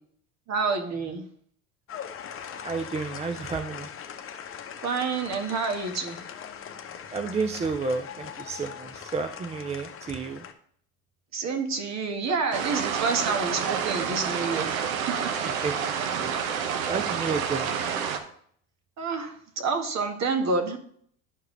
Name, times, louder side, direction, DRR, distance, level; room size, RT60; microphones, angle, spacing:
voice 1, 0.5-1.2 4.8-6.2 11.3-14.7 15.1-15.3 19.0-20.8, right 4 dB, 40° right, 5 dB, 1.6 m, -28 dB
sound 1, 1.9-10.5, left 8 dB, 30° left, 0.9 m, -41 dB
voice 2, 2.6-3.9 7.1-10.4 15.6-16.3 16.9-17.7, right 4 dB, 15° right, 7 dB, 0.4 m, -31 dB
sound 2, 12.5-18.2, right 7 dB, 75° right, 1.0 m, -29 dB
11.5 x 4.7 x 3.2 m, 0.62 s
hypercardioid pair, 80°, 42 cm